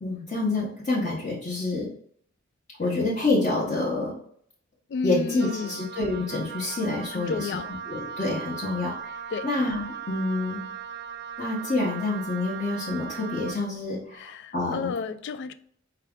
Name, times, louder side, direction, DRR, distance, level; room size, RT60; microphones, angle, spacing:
voice 1, 0.0-1.9 2.8-4.2 5.0-7.5 7.9-10.6 11.4-14.9, left 2 dB, 35° left, 0.9 m, -27 dB
voice 2, 4.9-5.9 7.1-7.7 9.3-9.5 14.2-15.5, left 5 dB, 60° left, 0.3 m, -31 dB
Wind instrument woodwind instrument, 5.4-13.7, right 7 dB, 55° right, 0.3 m, -38 dB
4.7 x 2.3 x 3.5 m
head